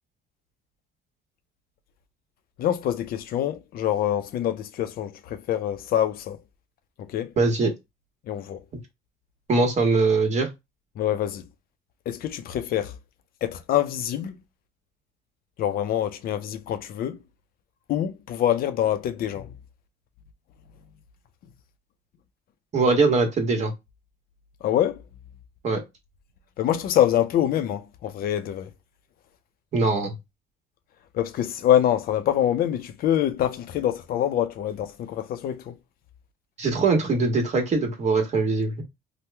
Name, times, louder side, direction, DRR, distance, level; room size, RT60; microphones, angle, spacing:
voice 1, 2.6-6.4 7.0-7.3 8.3-8.6 11.0-11.4 12.1-12.9 13.4-14.4 15.6-17.2 17.9-19.5 24.6-25.0 26.6-28.7 31.1-35.7, left 11 dB, 60° left, 0.5 m, -25 dB
voice 2, 7.4-7.7 9.5-10.5 22.7-23.7 25.6-25.8 29.7-30.1 36.6-38.8, right 3 dB, 45° right, 1.2 m, -22 dB
2.9 x 2.1 x 3.2 m
cardioid pair, 110°, 17 cm